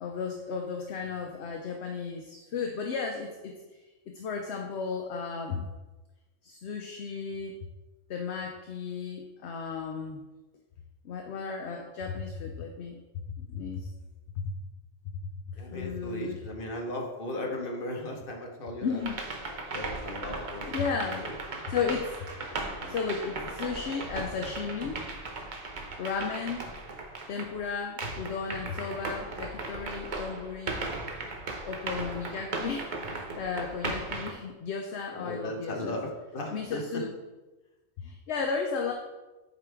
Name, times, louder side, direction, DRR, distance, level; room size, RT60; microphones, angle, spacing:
voice 1, 0.0-3.5 3.8-5.7 6.4-7.6 8.1-10.2 11.0-13.0 13.4-13.9 14.4-14.5 15.0-15.2 15.5-16.4 18.8-19.2 19.6-19.9 20.7-22.5 22.9-25.1 26.0-26.7 27.3-30.8 31.7-36.0 36.5-37.1 38.0-38.9, left 5 dB, 65° left, 3 dB, 0.9 m, -34 dB
voice 2, 15.6-19.0 19.4-20.8 21.2-21.3 22.5-22.9 35.2-37.0, left 1 dB, 45° left, 1 dB, 1.2 m, -37 dB
sound 1, 19.0-27.6 28.0-34.3, right 3 dB, 45° right, 0.8 m, -37 dB
8.1 x 4.8 x 3.4 m, 1.1 s
omnidirectional pair, 1.4 m